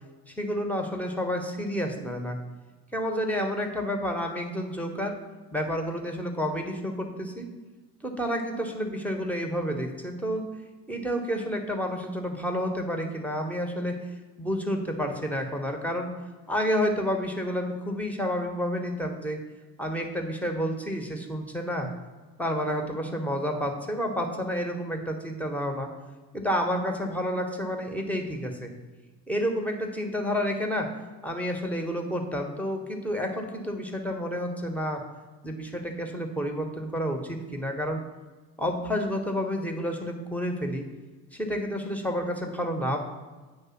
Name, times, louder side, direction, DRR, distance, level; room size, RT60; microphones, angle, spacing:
voice 1, 0.3-2.4 2.9-5.1 5.5-7.5 8.0-10.5 10.9-13.9 14.4-16.1 16.5-19.4 19.8-21.9 22.4-25.9 26.3-28.7 29.3-30.9 31.2-35.0 35.4-38.0 38.6-40.8 41.3-43.0, equal, 5° left, 2 dB, 1.2 m, -30 dB
8.7 x 3.2 x 5.8 m, 1.3 s
hypercardioid pair, 55°, 50 cm